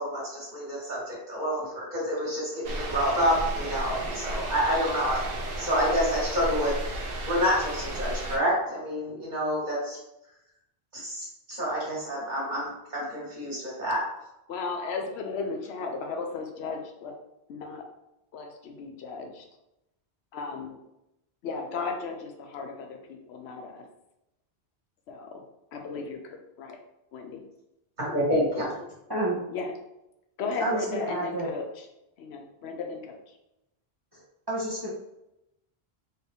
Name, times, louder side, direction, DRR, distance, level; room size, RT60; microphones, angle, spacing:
voice 1, 0.0-5.2 5.6-6.7 7.3-10.0 10.9-14.0 28.0-28.6, equal, 45° right, -6 dB, 1.7 m, -28 dB
sound 1, 2.6-8.4, right 1 dB, 65° right, 0.9 m, -33 dB
voice 2, 14.5-17.2 17.5-17.9 18.3-19.5 20.3-20.8 21.4-23.9 25.1-25.4 25.7-26.8 27.1-27.4 29.5-29.7 30.4-31.9 32.2-33.4, left 4 dB, 80° left, 4 dB, 0.9 m, -35 dB
voice 3, 30.6-31.5 34.1-34.2 34.5-34.9, right 1 dB, 25° right, -5 dB, 0.7 m, -29 dB
4.1 x 2.6 x 3.5 m, 0.87 s
omnidirectional pair, 1.1 m